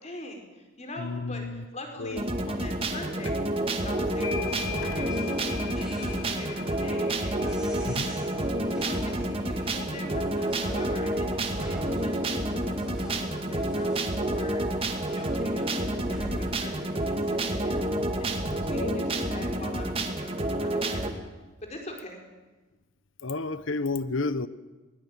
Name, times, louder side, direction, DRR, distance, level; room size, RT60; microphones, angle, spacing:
voice 1, 0.0-3.5 3.8-14.7 15.1-21.0 21.6-22.2, left 1 dB, 30° left, 3 dB, 4.9 m, -43 dB
voice 2, 1.0-1.6 2.0-2.2 7.9-8.1 18.7-19.0 23.2-24.5, left 3 dB, 70° left, 15 dB, 1.1 m, -31 dB
sound 1, 2.1-21.1, right 1 dB, 25° right, 2.2 m, -29 dB
sound 2, 3.3-3.6 3.8-11.1, left 8 dB, 85° left, 2.7 m, -41 dB
sound 3, 4.1-18.8, right 1 dB, 5° right, 5.5 m, -46 dB
22.0 x 20.0 x 9.4 m, 1.2 s
head